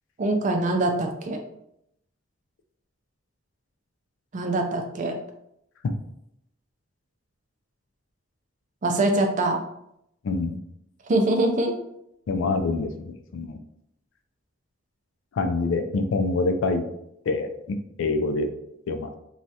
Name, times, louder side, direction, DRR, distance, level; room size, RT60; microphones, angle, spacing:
voice 1, 0.2-1.4 4.3-5.2 8.8-9.6 11.1-11.7, right 2 dB, 35° right, 3 dB, 0.4 m, -23 dB
voice 2, 10.2-10.6 12.3-13.6 15.4-16.8 17.3-18.5 18.9-19.2, left 3 dB, 70° left, 7 dB, 0.3 m, -26 dB
3.1 x 2.3 x 2.7 m, 0.77 s
head